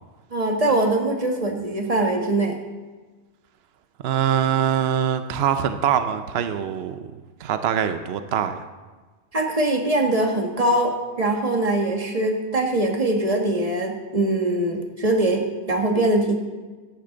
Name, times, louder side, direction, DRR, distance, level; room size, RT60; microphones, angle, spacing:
voice 1, 0.3-2.6 9.3-16.4, right 1 dB, 35° right, 2 dB, 1.5 m, -22 dB
voice 2, 4.0-7.0 7.4-8.7, right 9 dB, 70° right, 9 dB, 0.9 m, -23 dB
15.0 x 10.0 x 3.9 m, 1.3 s
omnidirectional pair, 1.1 m